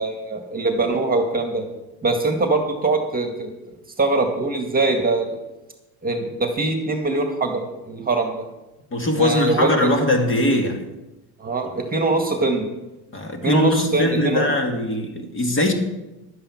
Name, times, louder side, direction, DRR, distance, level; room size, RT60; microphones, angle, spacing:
voice 1, 0.0-1.6 2.0-3.5 4.0-5.4 6.0-8.4 9.2-9.9 11.4-12.7 13.4-14.5, right 3 dB, 20° right, 1.9 m, -22 dB
voice 2, 8.9-10.9 13.1-15.7, left 1 dB, 25° left, 2.1 m, -21 dB
11.5 x 8.7 x 5.9 m
supercardioid pair, 95°, 46 cm